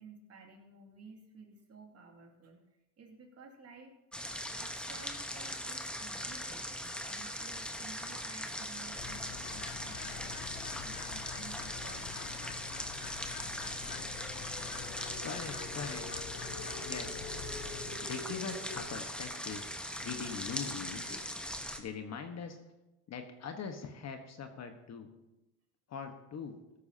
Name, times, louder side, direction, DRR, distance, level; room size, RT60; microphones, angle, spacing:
voice 1, 0.0-2.6 3.0-4.0 4.6-12.1, right 4 dB, 30° right, 2 dB, 2.5 m, -54 dB
sound 1, 4.1-21.8, equal, ahead, 1.1 m, -40 dB
Bird, 9.0-18.0, left 15 dB, 55° left, 0.7 m, -47 dB
sound 2, 13.8-18.8, left 2 dB, 80° left, 4.3 m, -48 dB
voice 2, 15.2-16.1 16.8-17.2 18.0-19.6 20.0-21.2 21.8-22.6 23.1-25.1 25.9-26.5, left 6 dB, 35° left, 6 dB, 1.4 m, -42 dB
15.5 x 13.0 x 2.8 m, 0.97 s
supercardioid pair, 100°, 47 cm